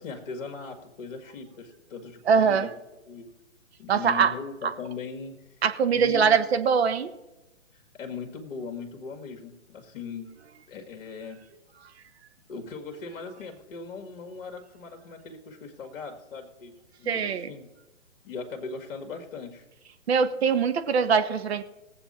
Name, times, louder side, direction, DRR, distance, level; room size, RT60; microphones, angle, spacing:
voice 1, 0.0-2.7 3.1-3.3 3.8-5.4 5.9-6.4 7.7-10.3 10.7-11.4 12.5-17.7 18.2-19.6, left 4 dB, 45° left, 4 dB, 1.9 m, -39 dB
voice 2, 2.3-2.7 3.9-4.3 5.6-7.1 17.1-17.5 20.1-21.6, right 6 dB, 55° right, 10 dB, 1.2 m, -22 dB
19.0 x 7.7 x 4.2 m, 0.99 s
figure-of-eight pair, 135°, 38 cm